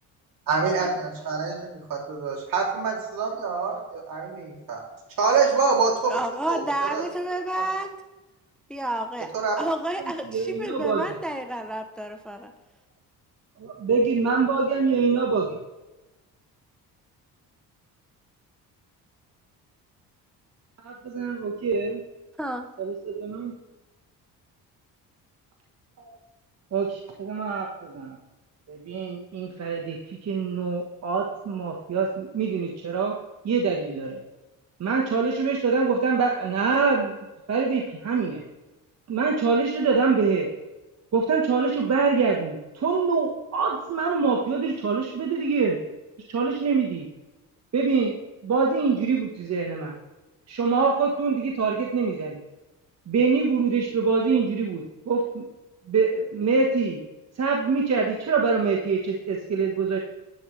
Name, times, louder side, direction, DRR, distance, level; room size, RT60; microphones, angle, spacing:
voice 1, 0.5-1.6 2.1-4.8 5.2-6.2 6.5-7.0 7.5-7.7 9.3-9.6, right 4 dB, 65° right, -2 dB, 3.0 m, -25 dB
voice 2, 6.1-8.0 8.7-9.3 9.6-12.5 22.4-22.7, right 1 dB, ahead, 6 dB, 0.7 m, -30 dB
voice 3, 10.3-11.0 13.6-15.6 20.8-22.0 22.8-23.5 26.0-26.2 26.7-28.2 28.7-33.1 33.4-34.2 34.8-37.1 37.5-38.4 39.1-40.5 41.1-45.8 46.3-47.1 47.7-48.2 48.4-49.9 50.5-52.4 53.1-55.4 55.9-57.0 57.3-60.0, right 4 dB, 45° right, -1 dB, 1.3 m, -24 dB
11.0 x 8.7 x 3.2 m, 1.1 s
cardioid pair, 90°, 37 cm